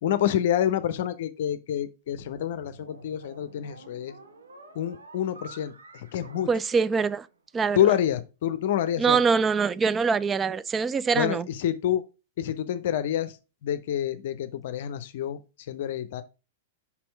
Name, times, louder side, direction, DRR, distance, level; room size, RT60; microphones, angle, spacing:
voice 1, 0.0-4.1 4.7-6.5 7.7-9.2 11.1-12.0 12.4-16.2, left 10 dB, 60° left, 0.6 m, -27 dB
sound 1, 2.1-7.5, right 3 dB, 85° right, 1.0 m, -50 dB
voice 2, 6.5-7.3 7.5-7.8 9.0-11.4, right 5 dB, 20° right, 0.4 m, -24 dB
5.6 x 4.3 x 4.4 m
hypercardioid pair, 100°, 0 cm